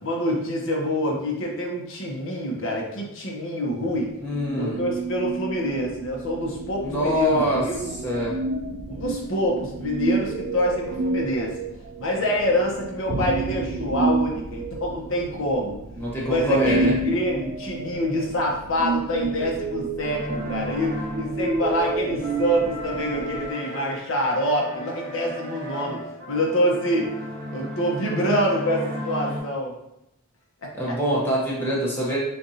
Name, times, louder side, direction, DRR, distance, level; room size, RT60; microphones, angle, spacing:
voice 1, 0.0-4.1 4.5-7.9 8.9-11.5 12.0-15.8 16.2-27.1 27.5-29.7 30.6-31.0, equal, 65° left, -2 dB, 1.0 m, -26 dB
voice 2, 4.2-4.8 6.8-7.7 8.0-8.4 16.0-16.9 30.7-32.2, equal, 10° left, -6 dB, 0.9 m, -24 dB
sound 1, 4.3-23.5, right 3 dB, 50° right, 0.3 m, -30 dB
sound 2, 20.0-29.4, equal, 70° right, 1.7 m, -35 dB
6.6 x 2.6 x 2.8 m, 0.85 s
head